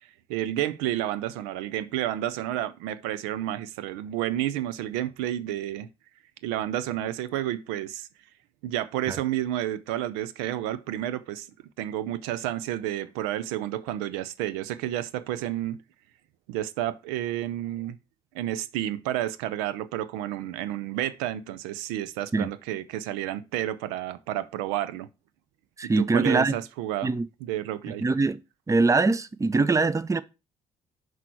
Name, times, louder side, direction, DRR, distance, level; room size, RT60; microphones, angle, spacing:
voice 1, 0.3-5.9 6.4-8.1 8.6-11.5 11.8-15.8 16.5-18.0 18.3-25.1 26.0-27.1 27.5-28.0, right 13 dB, 75° right, 0.5 m, -30 dB
voice 2, 25.8-26.6 27.0-27.3 28.0-28.4 28.7-30.2, right 3 dB, 15° right, 0.6 m, -23 dB
5.8 x 4.7 x 4.5 m
hypercardioid pair, 45°, 18 cm